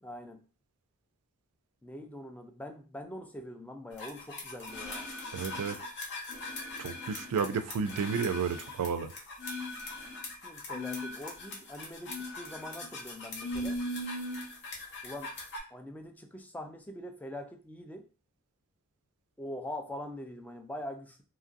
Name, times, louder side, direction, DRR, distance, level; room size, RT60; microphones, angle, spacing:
voice 1, 0.0-0.4 1.8-5.1 10.4-13.8 15.0-15.3 15.7-18.1 19.4-21.2, left 1 dB, 5° left, 5 dB, 0.3 m, -43 dB
sound 1, 4.0-15.6, left 2 dB, 50° left, 0.8 m, -39 dB
voice 2, 5.3-5.8 6.8-9.1, right 6 dB, 85° right, 11 dB, 0.3 m, -32 dB
2.9 x 2.5 x 2.5 m, 0.36 s
head